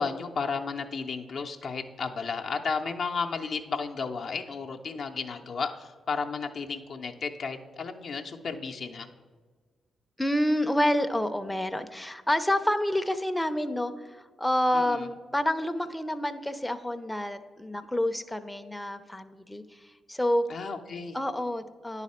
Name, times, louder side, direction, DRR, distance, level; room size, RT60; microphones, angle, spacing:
voice 1, 0.0-9.1 14.7-15.1 20.5-21.2, left 5 dB, 65° left, 3 dB, 0.5 m, -33 dB
voice 2, 10.2-20.4 21.1-22.0, left 1 dB, 10° left, 8 dB, 0.5 m, -28 dB
9.7 x 4.1 x 4.2 m, 1.5 s
supercardioid pair, 45°, 0 cm